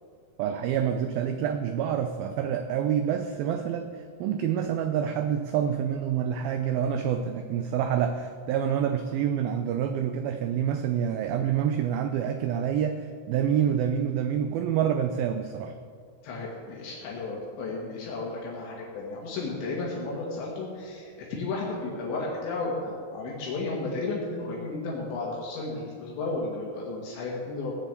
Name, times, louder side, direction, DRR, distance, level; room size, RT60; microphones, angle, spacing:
voice 1, 0.4-15.8, right 9 dB, 85° right, 7 dB, 2.1 m, -27 dB
voice 2, 16.2-27.7, left 3 dB, 80° left, -3 dB, 4.2 m, -33 dB
17.5 x 6.9 x 8.4 m, 2.2 s
omnidirectional pair, 5.1 m